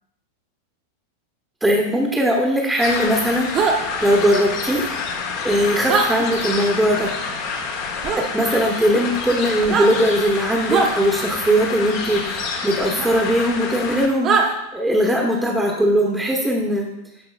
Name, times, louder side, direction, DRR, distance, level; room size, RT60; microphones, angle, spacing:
voice 1, 1.6-4.9 5.4-7.1 8.1-16.8, equal, 5° right, -1 dB, 1.0 m, -20 dB
sound 1, 2.8-14.1, left 5 dB, 45° left, 1.0 m, -28 dB
sound 2, 3.5-3.8 5.9-6.1 8.0-8.2 9.6-9.9 10.7-10.9 13.0-13.1 14.2-14.5, right 5 dB, 30° right, 1.0 m, -19 dB
12.5 x 4.7 x 2.4 m, 0.89 s
figure-of-eight pair, 90°, 0 cm